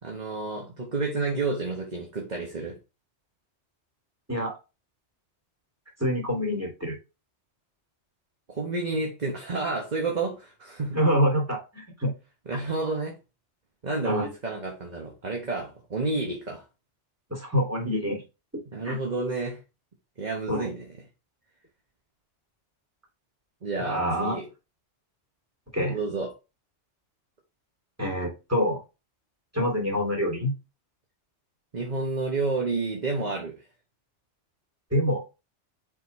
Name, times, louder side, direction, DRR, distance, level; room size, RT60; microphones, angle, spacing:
voice 1, 0.0-2.8 8.5-11.0 12.5-13.1 13.8-16.6 18.7-19.6 20.2-20.8 23.6-24.5 25.9-26.3 31.7-33.5, right 3 dB, 40° right, 1.3 m, -30 dB
voice 2, 6.0-7.0 10.9-12.1 14.0-14.3 17.3-18.2 18.8-19.0 20.5-20.7 23.8-24.4 25.7-26.0 28.0-28.8 29.5-30.5 34.9-35.2, equal, 10° right, 2.9 m, -26 dB
7.4 x 3.8 x 4.2 m
omnidirectional pair, 1.2 m